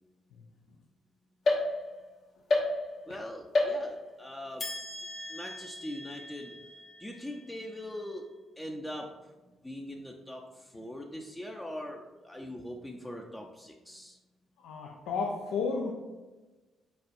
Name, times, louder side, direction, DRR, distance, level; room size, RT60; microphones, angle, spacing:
sound 1, 1.5-2.1 2.5-3.2 3.5-4.2 4.6-8.1, left 2 dB, 55° left, 1.0 m, -33 dB
voice 1, 3.1-4.7 5.3-6.6 7.0-8.3 8.6-9.1 9.6-14.2, left 1 dB, 15° left, 0 dB, 0.5 m, -41 dB
voice 2, 14.6-15.9, left 4 dB, 75° left, 0 dB, 0.4 m, -32 dB
4.4 x 4.2 x 2.6 m, 1.2 s
hypercardioid pair, 45°, 0 cm